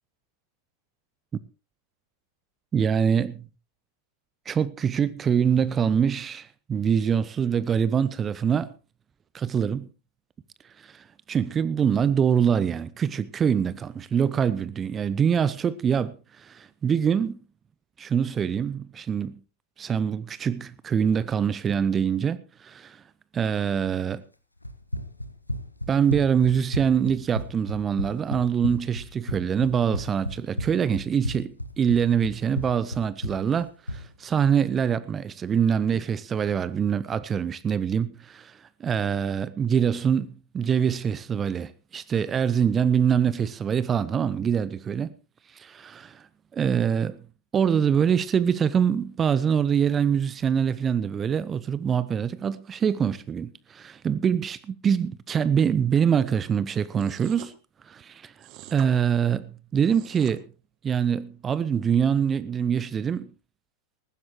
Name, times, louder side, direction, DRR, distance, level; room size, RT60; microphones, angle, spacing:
voice 1, 2.7-3.5 4.5-8.7 9.3-9.9 10.8-17.4 18.0-19.4 19.8-23.0 23.3-24.2 25.9-40.3 40.5-45.1 45.5-46.3 46.5-47.2 47.5-57.5 57.9-58.3 58.7-60.5 60.8-63.3, right 7 dB, 20° right, 0.6 m, -24 dB
Run, 24.6-34.1, left 1 dB, 85° left, 1.2 m, -33 dB
sound 1, 57.0-57.5 58.4-58.9 59.7-60.4, right 12 dB, 40° right, 1.5 m, -45 dB
19.5 x 15.0 x 3.0 m
figure-of-eight pair, 90°, 0 cm